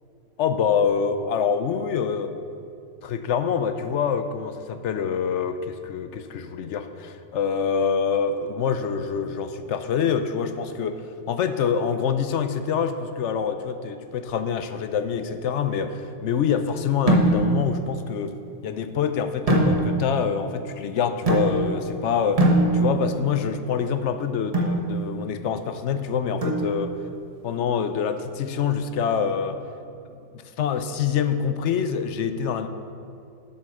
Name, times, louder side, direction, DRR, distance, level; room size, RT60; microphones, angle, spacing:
voice 1, 0.4-2.3 3.0-18.4 18.6-22.5 22.7-26.9 27.4-29.6 30.3-32.7, left 7 dB, 70° left, 10 dB, 0.9 m, -26 dB
sound 1, 17.1-17.7 19.5-20.2 21.3-21.9 22.4-23.2 24.5-24.9 26.4-27.0, right 2 dB, 30° right, 1.3 m, -21 dB
8.2 x 8.2 x 6.4 m, 2.4 s
omnidirectional pair, 1.3 m